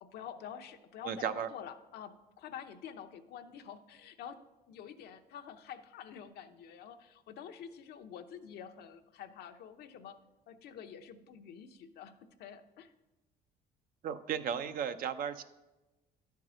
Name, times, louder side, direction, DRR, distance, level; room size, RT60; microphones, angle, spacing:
voice 1, 0.0-4.4 4.7-10.2 10.5-12.9, left 8 dB, 70° left, 7 dB, 0.8 m, -48 dB
voice 2, 1.0-1.5 14.0-15.4, right 8 dB, 60° right, 10 dB, 0.6 m, -35 dB
11.0 x 4.6 x 6.2 m, 1.0 s
cardioid pair, 110°, 17 cm